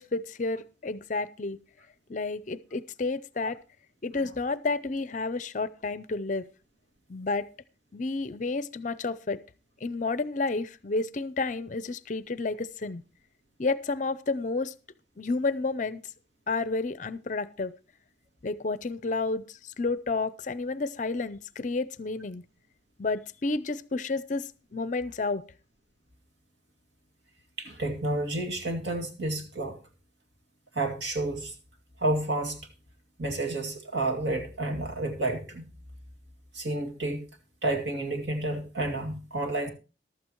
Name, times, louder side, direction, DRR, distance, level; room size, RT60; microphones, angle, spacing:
voice 1, 0.0-1.6 2.1-3.6 4.0-6.5 7.1-7.5 7.9-9.4 9.8-13.0 13.6-14.7 15.2-16.0 16.5-17.7 18.4-22.4 23.0-25.4, left 3 dB, 40° left, 16 dB, 0.5 m, -31 dB
voice 2, 27.6-29.8 30.7-31.5 32.0-32.6 33.2-35.7 36.5-37.2 37.6-39.7, right 2 dB, 70° right, 4 dB, 2.4 m, -30 dB
14.5 x 12.0 x 3.0 m, 0.32 s
head